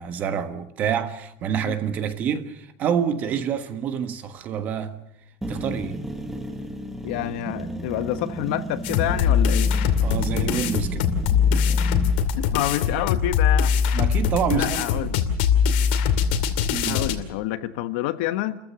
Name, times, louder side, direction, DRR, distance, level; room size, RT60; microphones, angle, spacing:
voice 1, 0.0-5.0 5.5-6.0 10.0-11.1 13.9-15.1 16.7-17.0, right 8 dB, 30° right, 1.4 m, -27 dB
sound 1, 5.4-12.2, right 1 dB, 5° right, 1.5 m, -33 dB
voice 2, 7.0-9.7 11.5-11.6 12.5-13.8 14.5-15.2 16.9-18.6, left 14 dB, 65° left, 1.2 m, -28 dB
sound 2, 8.8-17.1, left 7 dB, 80° left, 2.4 m, -22 dB
29.5 x 14.5 x 6.8 m
cardioid pair, 175°, 5 cm